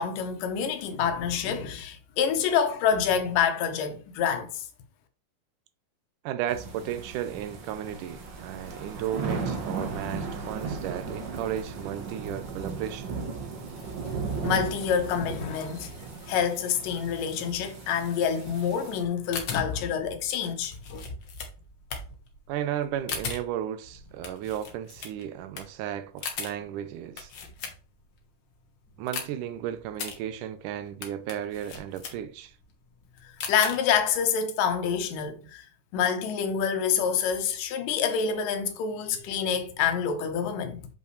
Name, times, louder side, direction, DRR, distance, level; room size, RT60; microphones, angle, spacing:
voice 1, 0.0-4.7 14.4-21.0 33.5-35.7 35.9-40.9, left 7 dB, 85° left, 2.6 m, -27 dB
voice 2, 6.2-13.2 22.5-27.3 29.0-32.5, right 10 dB, 80° right, 2.0 m, -34 dB
sound 1, 6.5-19.0, right 4 dB, 60° right, 1.2 m, -36 dB
sound 2, 19.0-28.2 28.5-34.2, left 5 dB, 55° left, 1.3 m, -39 dB
7.0 x 5.4 x 3.2 m
omnidirectional pair, 3.8 m